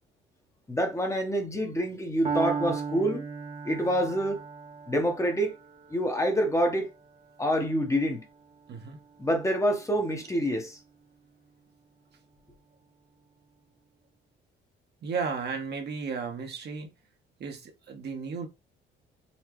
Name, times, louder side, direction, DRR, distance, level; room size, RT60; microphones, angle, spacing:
voice 1, 0.7-3.2 3.6-4.4 4.9-5.6 5.9-6.9 7.4-8.3 9.2-10.8, equal, 15° left, 0.9 m, -27 dB
Piano, 2.3-10.2, right 5 dB, 35° right, 0.9 m, -37 dB
voice 2, 8.7-9.0 15.0-16.9 17.4-18.5, right 5 dB, 55° right, 1.1 m, -34 dB
4.2 x 2.3 x 2.9 m
cardioid pair, 90°, 20 cm